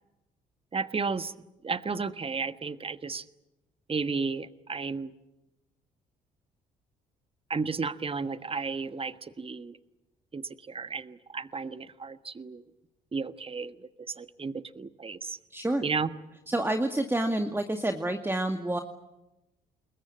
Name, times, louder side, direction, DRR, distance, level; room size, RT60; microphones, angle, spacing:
voice 1, 0.7-1.3 1.6-3.2 3.9-5.1 7.5-9.8 10.3-12.6 13.1-15.4 15.8-16.1, right 4 dB, 30° right, 12 dB, 1.4 m, -33 dB
voice 2, 15.5-15.8 16.5-18.8, right 1 dB, 10° right, 6 dB, 2.1 m, -28 dB
28.5 x 21.5 x 8.7 m, 0.98 s
hypercardioid pair, 55°, 20 cm